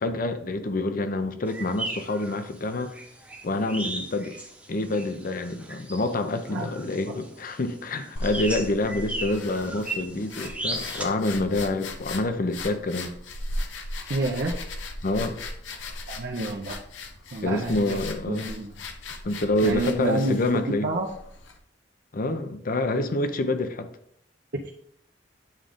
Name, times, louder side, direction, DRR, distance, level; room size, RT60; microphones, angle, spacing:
voice 1, 0.0-2.9 3.4-4.4 4.7-13.1 15.0-15.4 17.4-18.5 19.2-20.9 22.1-23.9, left 2 dB, 50° left, 0.6 m, -27 dB
sound 1, 1.5-11.1, right 2 dB, 10° right, 0.9 m, -37 dB
voice 2, 6.5-6.9 14.1-14.6 16.1-16.8 17.3-18.0 18.3-18.7 19.6-21.1 24.6-24.7, right 2 dB, 60° right, 0.7 m, -29 dB
sound 2, 8.2-21.6, left 2 dB, 85° left, 0.7 m, -38 dB
8.9 x 3.8 x 3.5 m
head